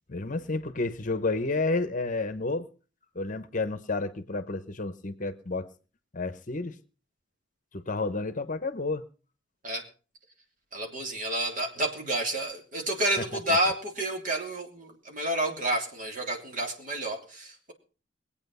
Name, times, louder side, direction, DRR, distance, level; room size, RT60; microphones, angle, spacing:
voice 1, 0.1-2.7 3.1-5.7 6.1-6.8 7.7-9.0 13.2-13.6, left 3 dB, 45° left, 12 dB, 1.0 m, -31 dB
voice 2, 10.7-17.7, right 1 dB, 45° right, 2 dB, 3.2 m, -30 dB
21.5 x 8.7 x 5.5 m, 0.37 s
head